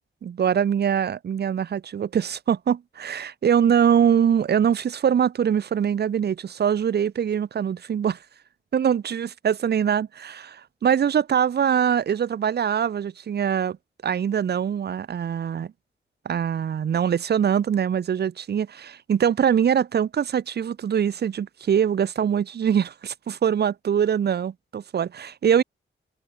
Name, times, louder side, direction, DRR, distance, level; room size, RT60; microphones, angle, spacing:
voice 1, 0.2-8.2 8.7-13.8 14.0-15.7 16.3-25.6, right 8 dB, 55° right, 0.5 m, -23 dB
wide cardioid pair, 100°, 21 cm